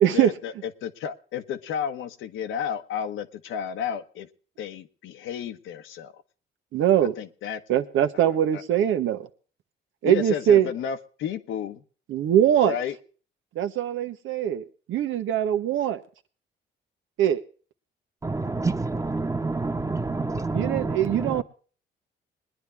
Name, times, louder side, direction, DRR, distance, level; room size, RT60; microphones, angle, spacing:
voice 1, 0.1-4.3 4.6-6.2 7.0-7.6 8.1-8.6 10.0-11.8 12.6-13.0, left 8 dB, 85° left, 1.3 m, -32 dB
voice 2, 6.7-7.1 7.7-9.3 10.0-10.7 12.1-12.7 13.5-16.0 17.2-17.4 20.5-21.4, right 10 dB, 80° right, 1.3 m, -22 dB
voice 3, 18.2-21.4, right 3 dB, 15° right, 1.3 m, -28 dB
21.0 x 10.0 x 3.5 m
cardioid pair, 90°, 20 cm